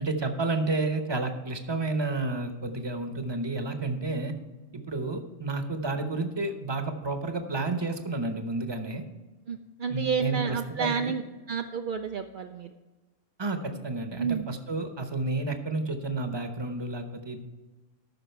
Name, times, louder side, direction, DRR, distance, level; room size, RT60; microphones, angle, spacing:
voice 1, 0.0-4.3 4.7-9.0 9.9-11.1 13.4-17.4, right 3 dB, 25° right, 6 dB, 0.9 m, -31 dB
voice 2, 9.5-11.2 11.5-12.7 14.2-14.5, right 6 dB, 65° right, 5 dB, 0.5 m, -30 dB
13.5 x 6.1 x 4.5 m, 1.2 s
omnidirectional pair, 1.4 m